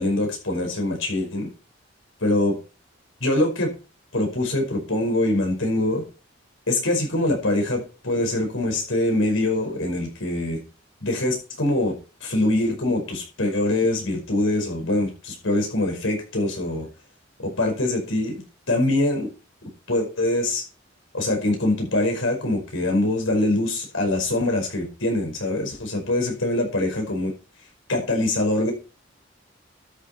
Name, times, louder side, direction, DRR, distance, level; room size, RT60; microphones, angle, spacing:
voice 1, 0.0-1.5 2.2-2.5 3.2-3.7 4.1-6.1 6.7-10.6 11.0-11.9 12.2-16.9 17.4-18.4 18.7-19.3 19.9-20.6 21.1-27.3 27.9-28.7, left 1 dB, 90° left, 2 dB, 5.2 m, -23 dB
12.5 x 7.6 x 4.3 m, 0.33 s
head